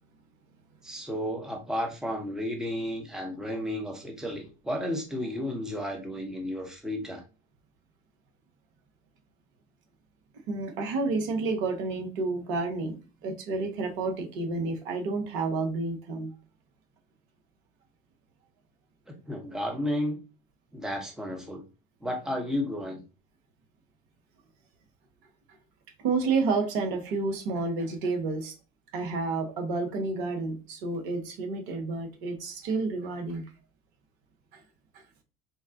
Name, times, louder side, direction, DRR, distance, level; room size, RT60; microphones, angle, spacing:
voice 1, 0.8-7.2 19.1-20.2 20.7-21.6 22.0-23.0, left 1 dB, ahead, 1 dB, 0.8 m, -32 dB
voice 2, 10.5-16.3 26.0-28.5 28.9-33.5 34.5-34.6 34.9-35.0, right 3 dB, 60° right, 4 dB, 1.0 m, -30 dB
4.0 x 2.2 x 2.5 m, 0.32 s
hypercardioid pair, 80°, 29 cm